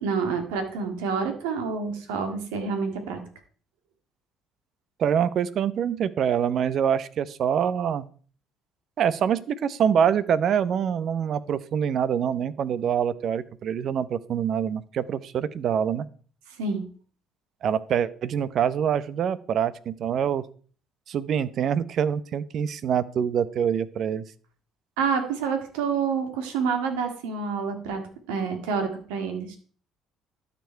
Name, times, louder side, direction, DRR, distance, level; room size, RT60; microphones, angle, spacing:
voice 1, 0.0-3.2 16.6-16.8 25.0-28.0 28.3-29.6, right 5 dB, 85° right, 6 dB, 2.0 m, -28 dB
voice 2, 5.0-8.0 9.0-16.1 17.6-20.4 21.1-24.2, right 8 dB, 60° right, 17 dB, 0.8 m, -25 dB
12.5 x 7.0 x 4.5 m, 0.42 s
supercardioid pair, 70°, 0 cm